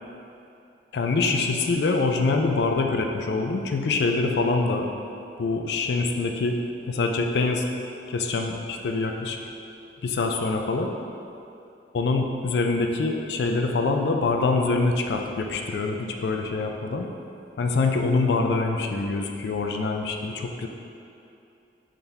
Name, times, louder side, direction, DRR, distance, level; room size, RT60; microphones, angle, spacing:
voice 1, 0.9-4.9 5.4-6.6 6.9-7.6 8.1-9.4 10.0-10.9 11.9-17.1 17.6-20.7, left 3 dB, 70° left, 3 dB, 0.4 m, -25 dB
4.1 x 3.8 x 3.4 m, 2.7 s
head